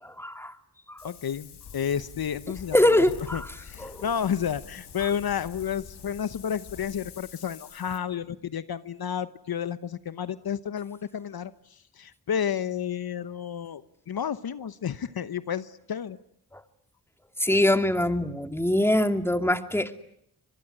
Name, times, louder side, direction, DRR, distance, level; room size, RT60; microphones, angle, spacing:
voice 1, 0.0-0.5 0.9-1.1 2.7-3.5 3.8-4.0 16.5-16.6 17.4-19.9, left 1 dB, 5° left, 8 dB, 2.4 m, -23 dB
Wind, 1.0-8.0, left 7 dB, 90° left, 2.5 m, -46 dB
voice 2, 1.0-2.9 3.3-13.8 14.1-16.2, left 8 dB, 65° left, 14 dB, 1.0 m, -31 dB
25.0 x 21.0 x 9.9 m, 0.72 s
cardioid pair, 50°, 39 cm